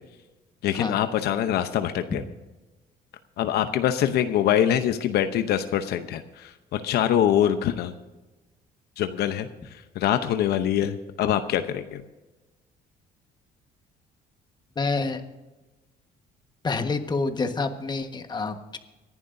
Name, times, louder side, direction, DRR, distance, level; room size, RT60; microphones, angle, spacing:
voice 1, 0.6-2.2 3.4-7.9 9.0-9.5 10.0-12.0, left 10 dB, 75° left, 9 dB, 0.8 m, -24 dB
voice 2, 14.8-15.2 16.6-18.8, left 3 dB, 25° left, 7 dB, 1.4 m, -27 dB
24.5 x 11.0 x 2.7 m, 1.1 s
cardioid pair, 110°, 17 cm